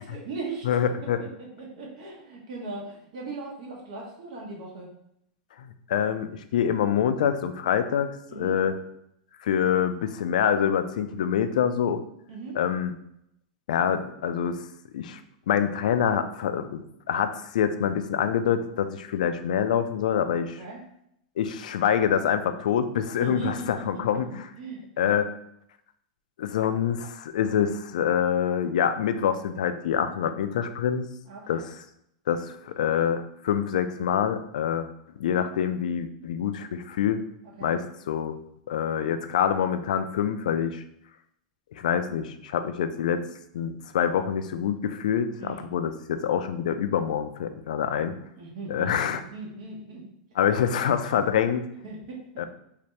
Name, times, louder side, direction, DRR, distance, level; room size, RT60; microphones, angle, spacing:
voice 1, 0.0-0.7 1.0-4.9 8.3-8.6 12.3-12.6 20.6-20.8 23.2-23.7 24.6-25.1 31.3-31.6 37.6-37.7 45.4-45.7 48.3-50.0 51.8-52.5, right 3 dB, 60° right, -2 dB, 1.0 m, -39 dB
voice 2, 0.6-1.2 5.6-8.8 9.4-12.0 12.6-12.9 13.7-14.6 14.9-15.2 15.5-20.6 21.4-24.5 25.0-25.3 26.4-31.1 31.5-31.7 32.3-34.9 35.2-37.2 37.6-38.4 38.7-40.8 41.8-43.2 43.5-48.1 48.7-49.2 50.4-51.7 52.4-52.5, left 8 dB, 80° left, 10 dB, 0.3 m, -26 dB
3.3 x 2.8 x 3.1 m, 0.76 s
supercardioid pair, 165°, 4 cm